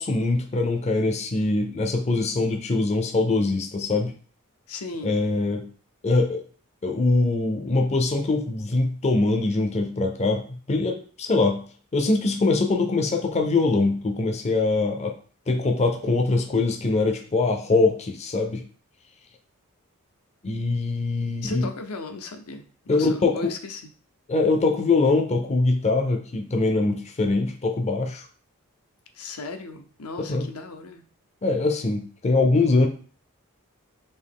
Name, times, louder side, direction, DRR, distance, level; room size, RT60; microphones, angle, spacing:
voice 1, 0.0-4.1 5.0-5.7 6.0-6.4 6.8-11.6 11.9-15.1 15.5-18.6 20.4-21.7 22.9-23.4 24.3-28.3 30.3-30.5 31.4-32.9, left 3 dB, 30° left, 4 dB, 0.5 m, -23 dB
voice 2, 4.7-5.2 21.4-23.8 29.1-31.0, left 3 dB, 85° left, 6 dB, 0.6 m, -36 dB
4.3 x 2.8 x 3.5 m, 0.42 s
head